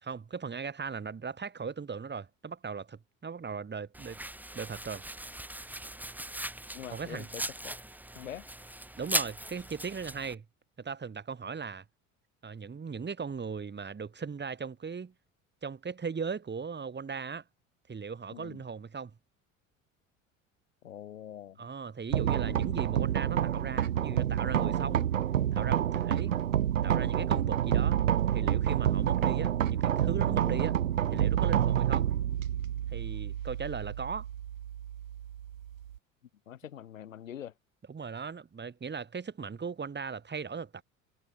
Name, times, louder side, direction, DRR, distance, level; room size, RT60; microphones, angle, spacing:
voice 1, 0.0-4.2 4.5-5.0 6.9-7.3 9.0-10.4 10.8-11.8 12.4-15.1 15.6-17.4 17.9-19.1 21.6-25.1 25.5-26.3 26.8-28.0 28.3-30.8 31.1-32.1 32.9-34.3 37.9-40.8, right 5 dB, 25° right, 7.9 m, -38 dB
Domestic sounds home sounds, 3.9-10.3, right 1 dB, 5° right, 2.8 m, -38 dB
voice 2, 6.7-7.7 8.1-8.4 18.3-18.6 20.8-21.6 36.5-37.5, left 10 dB, 85° left, 3.1 m, -44 dB
sound 1, 22.1-36.0, right 10 dB, 85° right, 1.6 m, -28 dB
hypercardioid pair, 70°, 38 cm